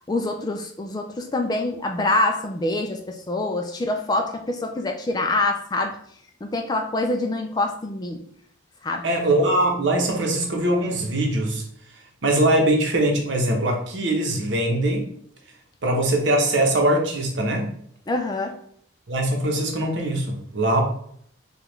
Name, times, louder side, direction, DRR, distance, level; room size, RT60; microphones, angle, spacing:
voice 1, 0.1-6.0 6.4-8.2 8.8-9.1 18.1-18.6, left 2 dB, 20° left, 4 dB, 0.3 m, -25 dB
voice 2, 9.0-11.6 12.2-15.1 15.8-17.7 19.1-20.8, right 1 dB, 65° right, 2 dB, 0.9 m, -22 dB
4.9 x 2.4 x 3.1 m, 0.65 s
head